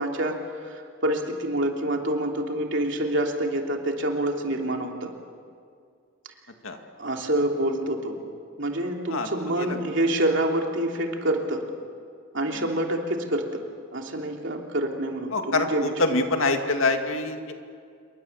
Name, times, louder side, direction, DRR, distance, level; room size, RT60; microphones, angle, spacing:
voice 1, 0.0-5.1 7.0-8.2 8.6-11.6 12.3-13.6 13.9-15.9, right 1 dB, 65° right, 2 dB, 3.0 m, -27 dB
voice 2, 15.3-17.5, left 2 dB, 80° left, 5 dB, 2.3 m, -25 dB
27.5 x 23.0 x 7.3 m, 2.3 s
head